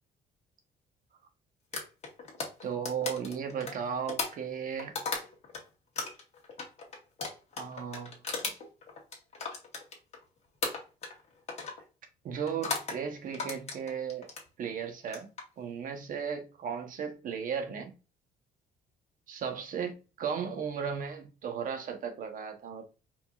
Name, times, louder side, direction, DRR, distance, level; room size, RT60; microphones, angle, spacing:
sound 1, 1.7-5.6 6.0-10.2 10.6-11.2 11.5-11.8 12.5-13.0 13.3-14.5 15.0-15.4, left 4 dB, 40° left, 1.5 m, -36 dB
voice 1, 2.6-5.0 7.6-8.2 8.4-8.5 12.2-14.3 14.6-15.3 15.6-17.9 19.3-22.8, right 7 dB, 55° right, 1.1 m, -35 dB
4.7 x 3.7 x 2.4 m
cardioid pair, 110°, 17 cm